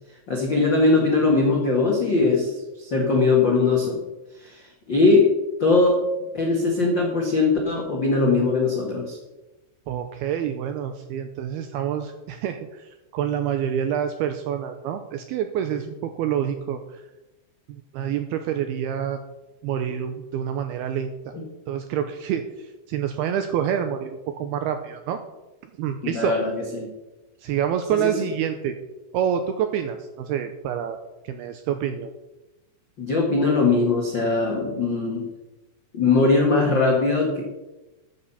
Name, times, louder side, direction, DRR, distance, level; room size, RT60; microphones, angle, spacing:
voice 1, 0.3-4.0 4.4-5.3 5.6-6.0 6.3-9.2 21.3-21.4 26.0-26.9 27.9-28.1 33.0-35.3 35.9-37.4, left 3 dB, 80° left, -1 dB, 1.0 m, -21 dB
voice 2, 9.9-17.0 17.7-19.2 19.6-21.3 21.7-25.2 25.8-26.4 27.4-28.8 29.1-31.0 31.2-32.1, right 9 dB, 90° right, 8 dB, 2.2 m, -27 dB
14.0 x 8.3 x 5.7 m, 1.0 s
omnidirectional pair, 5.3 m